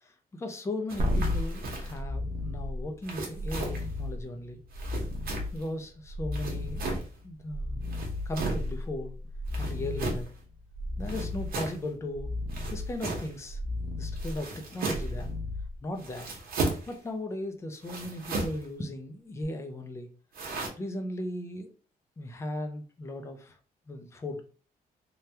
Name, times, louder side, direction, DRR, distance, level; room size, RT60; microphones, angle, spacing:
voice 1, 0.0-4.6 5.5-6.9 7.2-7.9 8.3-9.2 9.6-10.3 11.0-12.3 12.7-13.6 14.0-15.3 15.8-16.3 16.9-20.1 20.8-21.7 22.2-23.6 23.9-24.4, left 1 dB, 15° left, 5 dB, 0.5 m, -37 dB
sound 1, 0.9-2.0 3.0-3.9 4.7-5.7 6.3-7.1 7.8-8.7 9.5-10.3 11.0-11.8 12.5-13.4 14.2-15.2 16.0-16.9 17.8-18.7 20.3-20.7, right 3 dB, 70° right, 0.9 m, -35 dB
sound 2, 1.0-16.3 19.4-19.5, left 1 dB, 45° right, 0.6 m, -34 dB
3.3 x 2.3 x 2.8 m, 0.38 s
cardioid pair, 150°, 16 cm